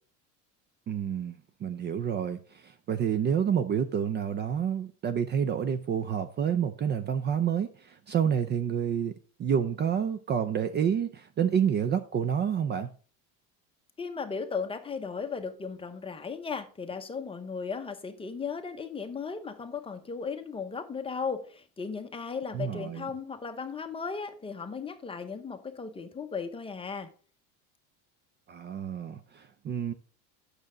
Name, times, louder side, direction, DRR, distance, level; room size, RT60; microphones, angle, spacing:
voice 1, 0.9-1.4 1.6-9.1 9.4-12.9 22.5-23.1 28.5-29.9, right 8 dB, 30° right, 0.5 m, -29 dB
voice 2, 14.0-27.1, left 5 dB, 15° left, 0.9 m, -36 dB
8.6 x 6.6 x 3.9 m
cardioid pair, 140°, 36 cm